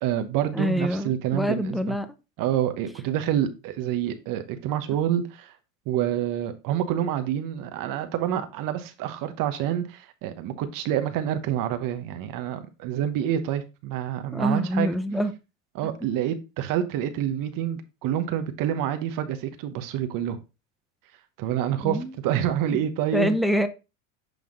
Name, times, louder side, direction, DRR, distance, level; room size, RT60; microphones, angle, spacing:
voice 1, 0.0-2.0 2.4-5.5 5.9-14.9 15.7-20.4 21.4-23.3, right 10 dB, 55° right, 1.1 m, -27 dB
voice 2, 0.5-2.1 14.3-15.3 21.8-22.1 23.1-23.7, equal, ahead, 0.7 m, -25 dB
8.0 x 3.4 x 3.8 m
supercardioid pair, 100°, 40 cm